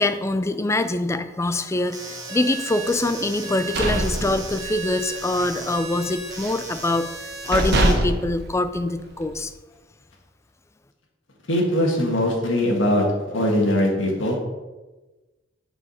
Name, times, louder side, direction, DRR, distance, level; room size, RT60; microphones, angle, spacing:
voice 1, 0.0-7.1 7.5-9.5, left 2 dB, 15° left, 10 dB, 0.4 m, -24 dB
sound 1, 1.9-7.9, right 3 dB, 20° right, 1.4 m, -35 dB
sound 2, 3.4-5.0 5.3-5.6 5.9-6.7 7.1-7.2 7.5-9.3, right 1 dB, 60° right, 1.0 m, -24 dB
voice 2, 11.5-13.1 13.3-14.4, left 1 dB, 80° left, 0 dB, 1.6 m, -21 dB
6.7 x 4.8 x 5.6 m, 1.2 s
head